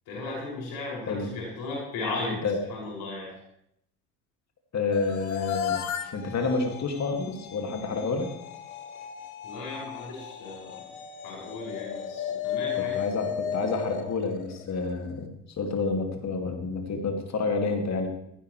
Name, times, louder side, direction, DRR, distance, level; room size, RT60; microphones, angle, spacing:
voice 1, 0.1-2.4 2.7-3.3 9.4-10.8 11.2-13.0, left 2 dB, 60° left, -4 dB, 6.5 m, -36 dB
voice 2, 1.1-1.5 2.3-2.6 3.3-3.4 4.7-5.8 6.1-8.3 12.8-18.1, left 4 dB, 40° left, 4 dB, 2.5 m, -29 dB
sound 1, 4.9-15.1, left 9 dB, 85° left, 1.0 m, -35 dB
18.0 x 15.5 x 3.3 m, 0.75 s
hypercardioid pair, 60°, 41 cm